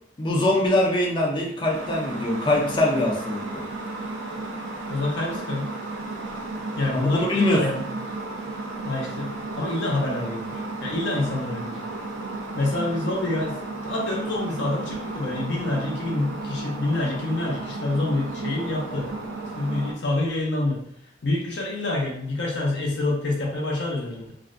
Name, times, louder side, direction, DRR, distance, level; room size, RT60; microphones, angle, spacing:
voice 1, 0.2-3.6 6.9-7.7, left 1 dB, 25° left, -2 dB, 0.4 m, -23 dB
sound 1, 1.7-19.9, right 2 dB, 90° right, 0.4 m, -33 dB
voice 2, 4.9-5.7 6.8-7.8 8.8-11.8 12.6-13.6 13.8-19.2 19.5-20.8 21.2-24.3, left 2 dB, 65° left, -1 dB, 0.6 m, -27 dB
2.4 x 2.1 x 2.4 m, 0.72 s
head